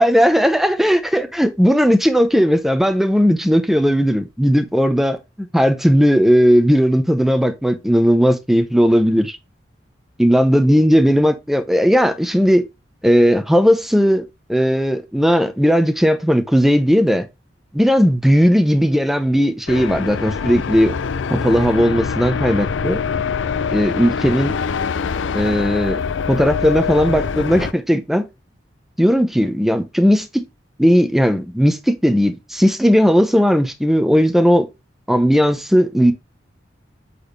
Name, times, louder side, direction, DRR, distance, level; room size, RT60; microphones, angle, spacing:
voice 1, 0.0-9.4 10.2-12.6 13.0-14.2 14.5-17.3 17.7-20.9 21.3-23.0 23.7-24.5 25.3-26.0 26.3-28.3 29.0-30.4 30.8-34.6 35.1-36.1, equal, ahead, 0.8 m, -16 dB
sound 1, 19.7-27.7, left 5 dB, 90° left, 0.5 m, -24 dB
8.4 x 4.2 x 3.3 m
head